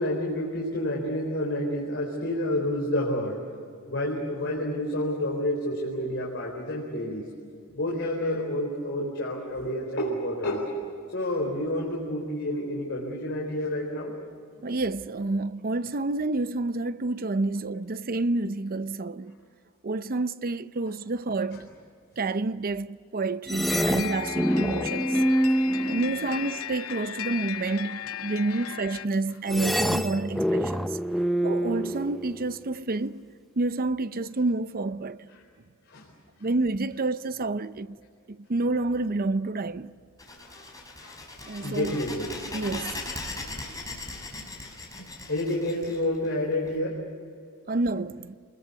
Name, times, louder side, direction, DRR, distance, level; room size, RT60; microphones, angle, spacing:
voice 1, 0.0-3.4 3.9-7.2 7.7-10.7 11.1-14.1 21.5-21.6 23.7-23.9 24.5-24.6 25.0-25.9 26.2-26.4 26.9-27.0 28.5-28.7 35.9-36.0 41.0-41.2 41.6-42.4 45.0-47.0, left 1 dB, 60° left, 4.3 m, -29 dB
voice 2, 14.6-19.4 19.8-21.7 22.2-25.2 25.8-31.0 31.4-33.2 33.6-35.3 36.4-38.0 38.3-39.9 41.4-42.0 42.5-43.1 47.7-48.3, right 2 dB, 45° right, 0.7 m, -29 dB
sound 1, 23.5-26.7 29.5-32.7, equal, ahead, 0.6 m, -26 dB
sound 2, 23.7-29.1, left 9 dB, 75° left, 0.6 m, -35 dB
sound 3, 40.2-46.7, left 2 dB, 15° left, 5.2 m, -39 dB
29.5 x 21.5 x 8.4 m
head